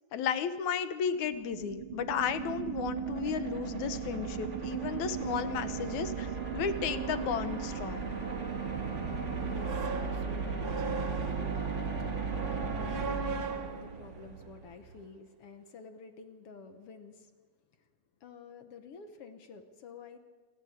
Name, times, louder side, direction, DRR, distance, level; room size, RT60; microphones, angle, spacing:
voice 1, 0.1-8.2, left 7 dB, 80° left, 11 dB, 2.5 m, -34 dB
sound 1, 1.2-14.3, right 6 dB, 30° right, 1.8 m, -36 dB
sound 2, 5.1-15.1, right 3 dB, 50° right, 1.1 m, -42 dB
voice 2, 9.1-17.3 17.7-17.9 18.2-20.2, left 5 dB, 60° left, 7 dB, 2.0 m, -50 dB
27.5 x 12.0 x 8.2 m, 1.4 s
omnidirectional pair, 3.3 m